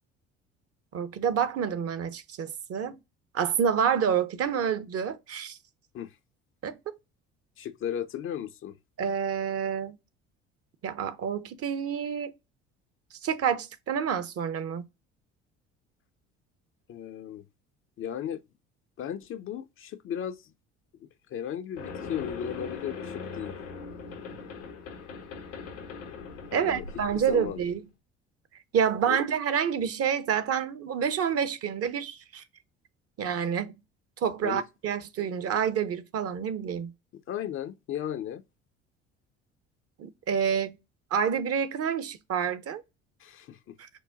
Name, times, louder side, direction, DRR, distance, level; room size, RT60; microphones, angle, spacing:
voice 1, 0.9-3.0 3.3-5.6 6.6-7.0 9.0-10.0 10.8-12.3 13.2-14.8 26.5-27.8 28.7-32.4 33.2-33.7 34.2-36.9 40.0-40.8 41.1-42.8 43.8-43.9, right 7 dB, 40° right, 0.7 m, -28 dB
voice 2, 7.6-8.8 16.9-17.4 18.0-18.4 19.0-20.5 21.0-23.6 26.5-26.9 27.1-27.6 29.1-29.2 34.4-34.6 37.3-38.4 43.2-43.8, left 9 dB, 35° left, 0.5 m, -35 dB
sound 1, 21.8-27.8, left 4 dB, 85° left, 0.9 m, -40 dB
4.7 x 2.2 x 3.8 m
figure-of-eight pair, 60°, 36 cm